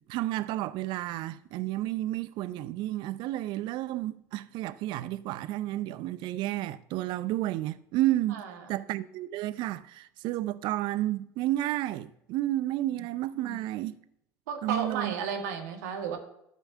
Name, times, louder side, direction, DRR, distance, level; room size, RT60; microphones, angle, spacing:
voice 1, 0.1-8.4 8.7-14.0 14.6-15.1, right 15 dB, 60° right, 0.6 m, -31 dB
voice 2, 8.3-8.8 13.0-13.1 13.4-13.6 14.5-16.2, right 7 dB, 75° right, 2.1 m, -34 dB
12.5 x 5.4 x 7.3 m
hypercardioid pair, 70°, 9 cm